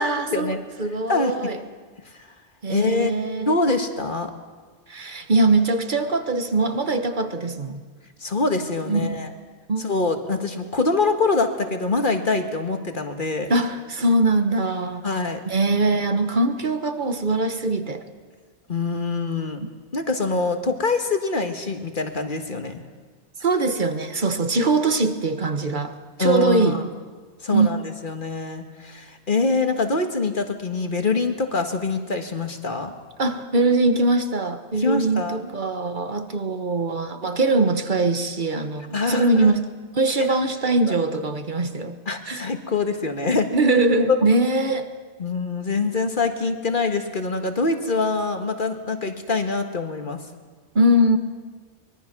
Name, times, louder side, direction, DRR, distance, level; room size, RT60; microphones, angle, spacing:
voice 1, 0.0-1.6 2.6-3.5 4.9-7.8 8.9-9.2 9.7-9.8 13.5-15.0 15.4-18.0 23.4-26.9 27.5-27.7 33.2-39.6 39.9-42.0 42.3-42.5 43.5-44.9 50.7-51.2, right 2 dB, 45° right, 1.4 m, -22 dB
voice 2, 2.7-3.1 3.5-4.3 8.2-9.3 9.8-13.5 15.0-15.4 18.7-19.6 19.9-22.8 26.2-26.8 27.4-32.9 34.7-35.4 38.9-39.5 40.2-40.4 40.9-41.0 42.1-43.5 45.2-50.2, left 3 dB, 45° left, 1.7 m, -24 dB
24.0 x 21.0 x 6.0 m
omnidirectional pair, 1.2 m